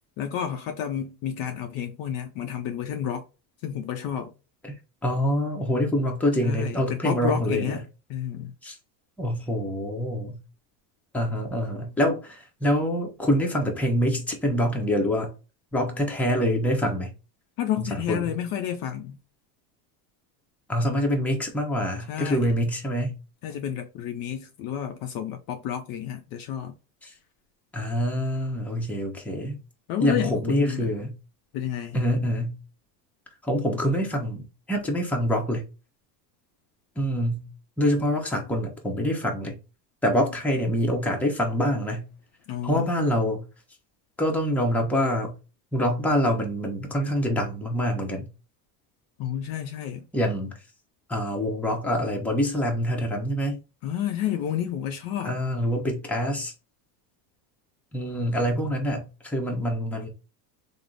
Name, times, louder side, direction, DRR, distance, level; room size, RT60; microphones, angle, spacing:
voice 1, 0.2-3.2 3.6-4.3 6.4-7.8 8.1-8.5 17.6-19.2 22.1-22.6 23.4-26.8 29.9-30.9 31.5-32.0 42.5-42.9 49.2-50.1 53.8-55.4, left 9 dB, 50° left, 0.5 m, -30 dB
voice 2, 5.0-7.8 8.6-8.8 9.2-10.4 11.1-15.3 15.7-17.1 17.8-18.3 20.7-23.1 27.0-27.1 27.7-29.6 30.0-31.2 31.9-32.6 33.4-35.7 37.0-37.5 37.8-39.6 40.0-42.1 42.6-43.4 44.2-45.3 45.7-48.3 50.1-50.6 51.1-53.6 55.2-56.5 57.9-60.1, equal, 5° left, 0.7 m, -25 dB
3.3 x 2.0 x 3.8 m
supercardioid pair, 125°, 49 cm